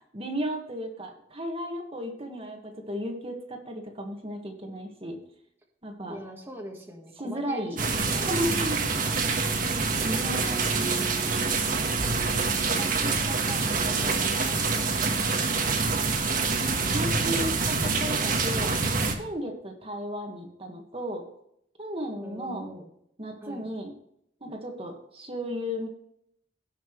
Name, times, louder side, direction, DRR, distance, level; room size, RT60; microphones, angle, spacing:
voice 1, 0.1-5.2 5.8-6.2 7.2-7.8 8.3-8.8 10.0-11.3 16.9-18.8 19.2-21.2 21.8-22.7 23.2-23.9 24.4-25.9, equal, 30° right, 3 dB, 1.7 m, -34 dB
voice 2, 6.1-8.4 8.7-9.5 10.0-10.1 12.7-15.8 22.2-22.9 23.4-23.7, equal, 10° right, 0 dB, 1.6 m, -43 dB
sound 1, 7.8-19.1, right 4 dB, 45° right, 1.4 m, -26 dB
17.0 x 5.9 x 3.1 m, 0.73 s
head